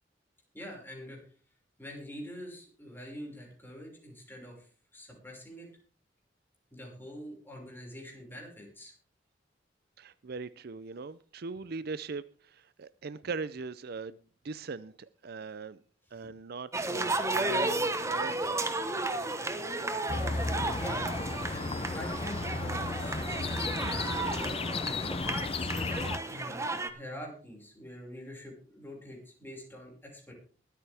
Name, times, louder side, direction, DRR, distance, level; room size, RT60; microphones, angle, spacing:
voice 1, 0.5-1.2 1.8-5.7 6.7-8.9 20.8-21.1 21.5-24.6 25.5-25.9 26.3-30.3, equal, 10° left, -1 dB, 5.6 m, -45 dB
voice 2, 10.0-14.2 14.4-15.8 16.1-18.4, right 4 dB, 60° right, 16 dB, 0.5 m, -40 dB
sound 1, 16.7-26.9, right 2 dB, 15° right, 1.2 m, -33 dB
sound 2, 20.1-26.2, left 3 dB, 30° left, 0.6 m, -34 dB
23.0 x 9.1 x 3.5 m, 0.40 s
head